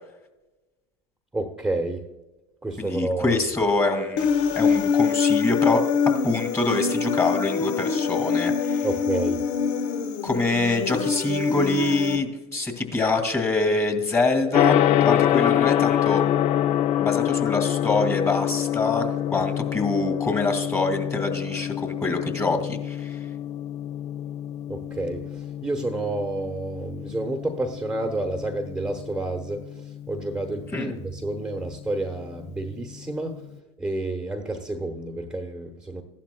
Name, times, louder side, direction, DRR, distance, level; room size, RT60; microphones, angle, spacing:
voice 1, 1.3-2.0 2.6-3.4 8.8-9.4 24.7-33.4 33.8-36.0, right 2 dB, 5° right, 4 dB, 1.0 m, -30 dB
voice 2, 2.8-4.3 4.6-5.8 6.2-8.9 10.2-16.2 17.0-23.2 30.7-30.9, left 3 dB, 15° left, 6 dB, 2.2 m, -25 dB
Human voice, 4.2-12.2, left 6 dB, 75° left, 1.0 m, -24 dB
Gong, 14.5-33.5, left 11 dB, 45° left, 0.4 m, -26 dB
15.0 x 11.5 x 2.3 m, 1.1 s
hypercardioid pair, 90°, 16 cm